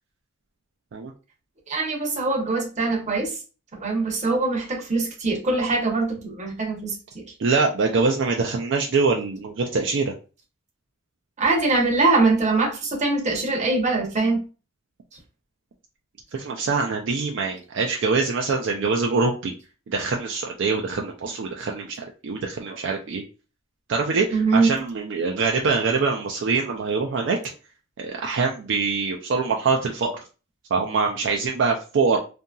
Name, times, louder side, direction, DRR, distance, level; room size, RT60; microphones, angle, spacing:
voice 1, 1.7-3.4 3.8-7.3 11.4-14.4 24.3-24.7, right 3 dB, 35° right, 0 dB, 0.8 m, -23 dB
voice 2, 7.4-10.1 16.3-19.5 19.9-23.2 23.9-27.4 28.0-30.1 30.7-32.2, right 4 dB, 60° right, 1 dB, 0.4 m, -24 dB
2.7 x 2.6 x 2.3 m, 0.34 s
head